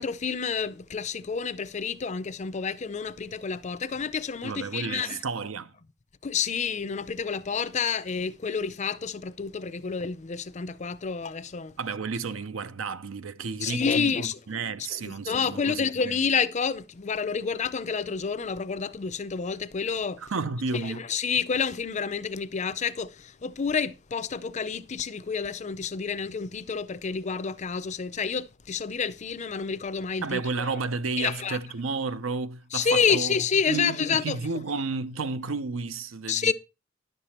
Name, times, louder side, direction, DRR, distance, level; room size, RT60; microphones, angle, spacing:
voice 1, 0.0-5.2 6.2-11.7 13.6-14.4 15.0-20.2 20.7-30.4 31.2-31.6 32.7-34.4 36.3-36.5, left 6 dB, 35° left, 0.5 m, -29 dB
voice 2, 4.4-5.7 11.8-16.2 20.2-21.0 30.2-33.3 33.7-36.5, right 4 dB, 85° right, 0.7 m, -32 dB
10.5 x 6.8 x 4.3 m
head